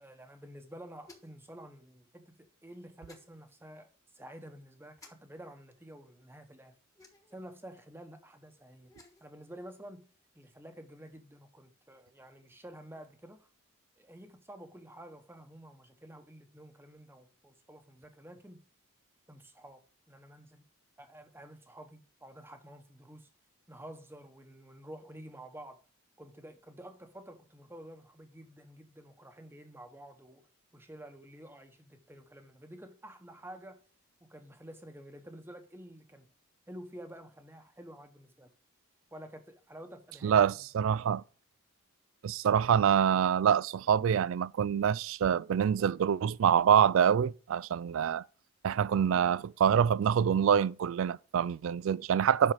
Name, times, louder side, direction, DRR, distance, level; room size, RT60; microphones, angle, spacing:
voice 1, 0.0-6.8 7.3-8.9 9.2-10.0 10.3-13.5 14.0-18.6 19.3-20.6 21.0-23.3 23.7-25.8 26.2-30.5 30.7-33.8 34.2-36.3 36.7-38.5 39.1-40.7, right 1 dB, 10° right, 1.0 m, -50 dB
sound 1, 1.0-1.5 3.1-3.3 5.0-5.1 7.0-7.4 8.8-9.3, left 2 dB, 15° left, 1.3 m, -56 dB
voice 2, 40.2-41.2 42.2-48.2 48.6-52.5, right 8 dB, 65° right, 0.3 m, -26 dB
7.7 x 5.6 x 4.8 m
head